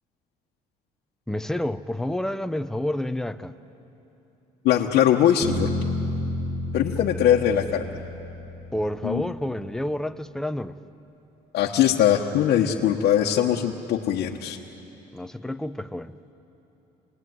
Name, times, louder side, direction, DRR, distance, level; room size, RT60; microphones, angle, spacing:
voice 1, 1.3-3.5 8.7-10.8 15.1-16.2, left 1 dB, 5° left, 10 dB, 0.8 m, -29 dB
voice 2, 4.6-5.7 6.7-7.8 9.0-9.2 11.5-14.6, left 10 dB, 75° left, -1 dB, 1.3 m, -21 dB
sound 1, 5.4-9.5, left 1 dB, 55° right, 3.6 m, -31 dB
28.5 x 20.0 x 9.5 m, 3.0 s
cardioid pair, 110°, 17 cm